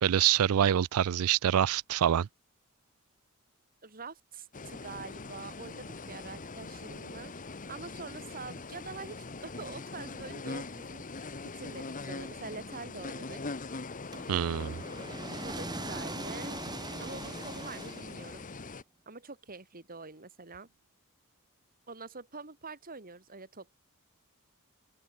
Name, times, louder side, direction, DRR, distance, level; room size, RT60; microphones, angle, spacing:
voice 1, 0.0-2.3 14.3-14.8, right 10 dB, 75° right, 0.4 m, -26 dB
voice 2, 3.8-13.4 15.4-16.6 17.0-18.4 19.1-20.7 21.9-23.8, right 4 dB, 40° right, 2.9 m, -45 dB
sound 1, 4.5-18.8, left 3 dB, 35° left, 1.2 m, -42 dB
sound 2, 14.1-18.5, right 2 dB, 20° right, 2.1 m, -41 dB
open air
head